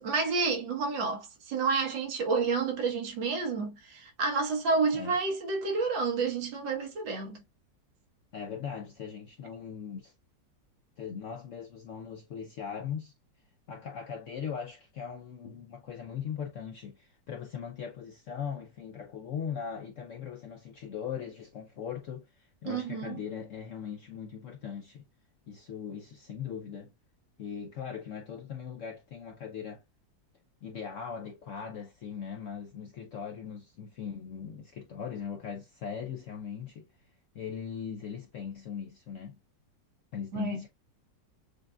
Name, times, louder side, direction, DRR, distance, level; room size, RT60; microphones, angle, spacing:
voice 1, 0.0-7.4 22.7-23.2 40.3-40.6, right 4 dB, 85° right, 1.9 m, -30 dB
voice 2, 8.3-10.1 11.0-13.1 13.7-25.0 25.5-26.9 27.4-29.8 30.6-36.9 37.3-39.4 40.1-40.7, left 7 dB, 70° left, 0.7 m, -39 dB
6.5 x 2.4 x 2.2 m
omnidirectional pair, 2.0 m